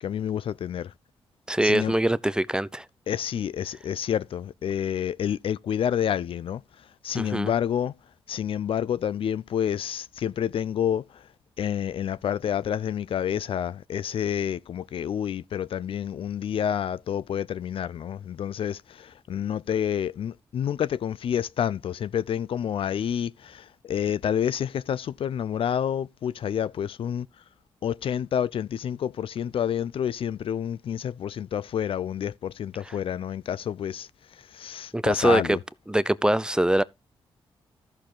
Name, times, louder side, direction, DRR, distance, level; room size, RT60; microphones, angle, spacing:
voice 1, 0.0-0.9 1.6-1.9 3.1-7.9 8.3-11.3 11.6-27.3 27.8-35.6, left 9 dB, 65° left, 0.5 m, -29 dB
voice 2, 1.5-2.8 7.2-7.5 34.9-35.6 35.9-36.8, right 1 dB, 10° right, 0.6 m, -23 dB
13.5 x 6.7 x 3.8 m
cardioid pair, 70°, 10 cm